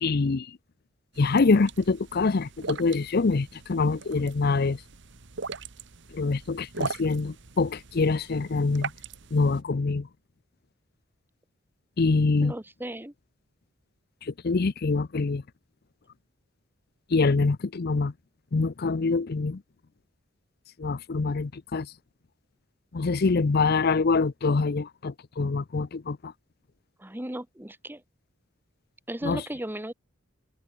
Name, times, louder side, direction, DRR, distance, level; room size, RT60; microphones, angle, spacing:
voice 1, 0.0-0.5 1.2-4.8 6.1-8.9 9.3-10.1 12.0-12.5 14.3-15.4 17.1-18.1 18.5-19.6 20.8-21.9 22.9-26.3 29.2-29.4, left 4 dB, 55° left, 0.6 m, -25 dB
sound 1, 1.1-9.6, right 4 dB, 65° right, 1.3 m, -40 dB
voice 2, 12.4-13.1 27.0-28.0 29.1-29.9, right 1 dB, 10° right, 1.5 m, -36 dB
head